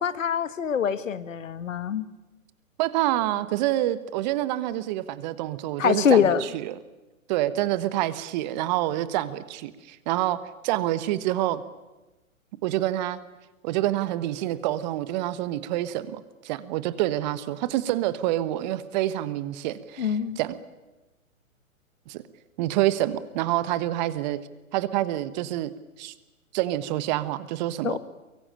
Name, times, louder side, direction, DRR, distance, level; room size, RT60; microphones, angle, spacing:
voice 1, 0.0-2.1 5.8-6.4 20.0-20.4 27.8-28.0, left 8 dB, 65° left, 14 dB, 1.7 m, -24 dB
voice 2, 2.8-6.8 7.3-11.6 12.6-13.2 13.6-20.6 22.1-22.2 22.6-24.4 24.7-25.7 26.0-26.1 26.5-28.0, right 14 dB, 30° right, 15 dB, 1.3 m, -27 dB
23.5 x 23.5 x 9.0 m, 1.1 s
figure-of-eight pair, 125°, 42 cm